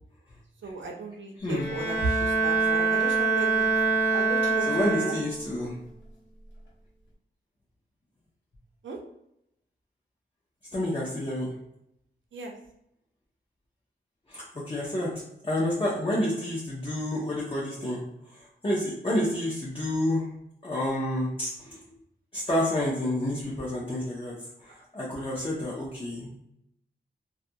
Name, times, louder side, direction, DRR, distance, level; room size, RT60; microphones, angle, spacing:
voice 1, 0.6-5.2 8.8-9.0 12.3-12.5, right 3 dB, 85° right, 0 dB, 0.5 m, -35 dB
voice 2, 1.4-1.7 2.1-2.2 4.7-5.8 10.7-11.5 14.3-15.1 15.4-18.0 18.3-20.3 20.6-21.8 22.3-24.4 24.6-26.3, left 1 dB, 30° left, -6 dB, 0.6 m, -29 dB
Bowed string instrument, 1.5-5.6, right 4 dB, 75° left, 0.8 m, -25 dB
2.3 x 2.2 x 2.7 m, 0.79 s
wide cardioid pair, 125°, 19 cm